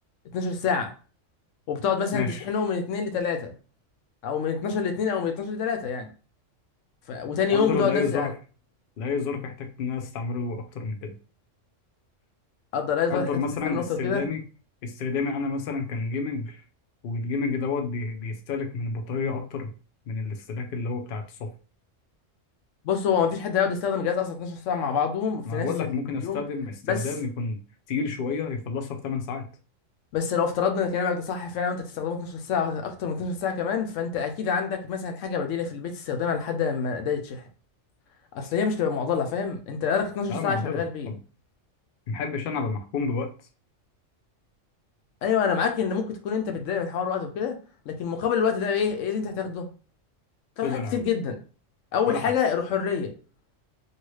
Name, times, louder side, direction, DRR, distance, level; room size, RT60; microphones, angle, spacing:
voice 1, 0.3-0.9 1.7-3.5 4.2-6.1 7.1-8.3 12.7-13.3 13.6-14.2 22.8-26.4 26.9-27.1 30.1-37.4 38.3-41.1 45.2-47.6 47.9-49.7 50.6-51.3 51.9-53.1, left 6 dB, 80° left, 0.9 m, -27 dB
voice 2, 2.1-2.4 7.5-8.3 9.0-11.1 13.1-14.4 14.8-16.6 17.0-19.7 20.1-21.5 25.4-27.6 27.9-29.5 40.3-41.2 42.1-43.3 50.6-51.0 52.1-52.2, left 4 dB, 55° left, 0.7 m, -30 dB
2.8 x 2.6 x 3.1 m
omnidirectional pair, 1.3 m